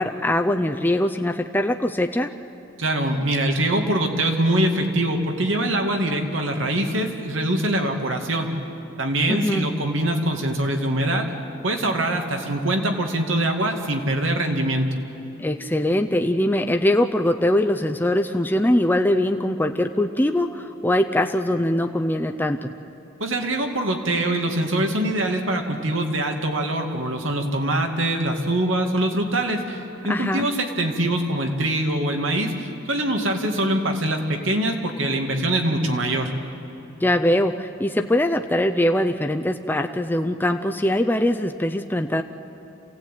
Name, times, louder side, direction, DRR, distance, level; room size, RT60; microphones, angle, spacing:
voice 1, 0.0-2.3 9.3-9.7 15.4-22.7 30.1-30.5 37.0-42.2, left 1 dB, 10° left, 4 dB, 0.5 m, -22 dB
voice 2, 2.8-8.5 9.0-11.3 11.6-14.9 23.2-29.8 30.0-36.3, right 1 dB, 90° right, 3 dB, 2.3 m, -23 dB
27.5 x 16.5 x 9.2 m, 2.8 s
head